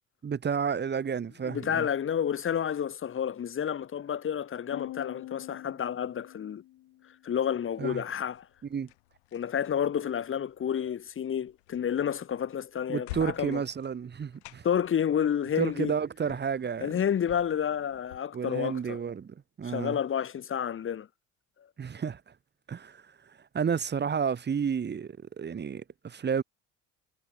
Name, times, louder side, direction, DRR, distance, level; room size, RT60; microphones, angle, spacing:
voice 1, 0.2-1.9 7.8-8.0 8.7-8.9 12.9-14.6 15.6-16.9 18.3-20.0 21.8-22.2 22.7-23.0 23.5-26.4, right 7 dB, 30° right, 1.5 m, -31 dB
voice 2, 1.4-6.6 7.2-8.5 9.3-13.6 14.6-15.9 16.8-19.0 19.6-21.1, left 8 dB, 40° left, 1.3 m, -30 dB
sound 1, 4.7-7.1, left 15 dB, 65° left, 2.1 m, -44 dB
sound 2, 8.2-18.2, left 21 dB, 90° left, 1.7 m, -51 dB
supercardioid pair, 75°, 32 cm